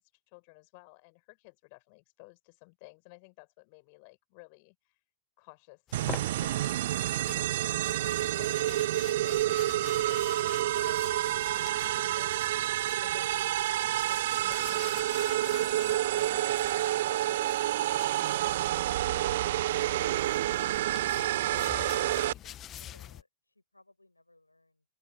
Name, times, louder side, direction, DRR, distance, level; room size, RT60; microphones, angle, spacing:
voice 1, 0.0-5.0 5.4-6.7 7.2-12.8 13.0-13.3 14.1-20.1 20.8-21.3 21.7-21.8 22.2-22.6, left 32 dB, 45° left, 6.9 m, -55 dB
sound 1, 5.9-18.7 19.7-23.2, left 11 dB, 30° left, 1.7 m, -48 dB
sound 2, 5.9-22.3, right 14 dB, 55° right, 0.5 m, -29 dB
voice 2, 22.0-24.9, left 2 dB, 85° left, 6.1 m, -62 dB
open air
figure-of-eight pair, 90°, 0 cm